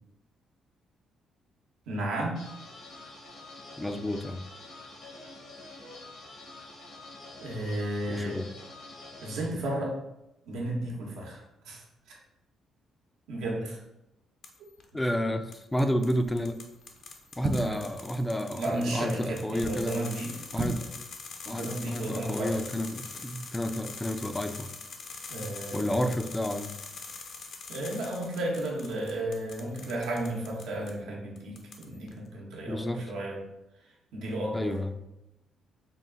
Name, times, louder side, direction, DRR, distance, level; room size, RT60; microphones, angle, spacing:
voice 1, 1.9-2.4 7.4-8.4 9.2-10.0 10.5-11.8 13.3-13.8 17.6-17.8 18.6-20.3 21.4-22.6 25.3-26.1 27.7-33.4 34.1-34.7, right 1 dB, 90° right, -2 dB, 0.9 m, -33 dB
sound 1, 2.3-9.5, left 2 dB, 85° left, 1.3 m, -47 dB
voice 2, 3.8-4.4 8.1-8.5 14.9-16.6 17.4-20.0 20.5-20.9 21.5-24.7 25.7-26.7 32.7-33.0 34.5-34.9, equal, 10° left, 8 dB, 0.3 m, -30 dB
sound 2, 14.4-14.8 15.5-30.9 31.4-32.1, left 4 dB, 60° left, 0.6 m, -44 dB
sound 3, 16.2-16.5 17.4-17.9 19.4-19.9 20.5-20.9 21.2-21.3, right 4 dB, 55° right, 0.4 m, -34 dB
3.8 x 2.4 x 3.8 m, 0.92 s
cardioid pair, 90°, 0 cm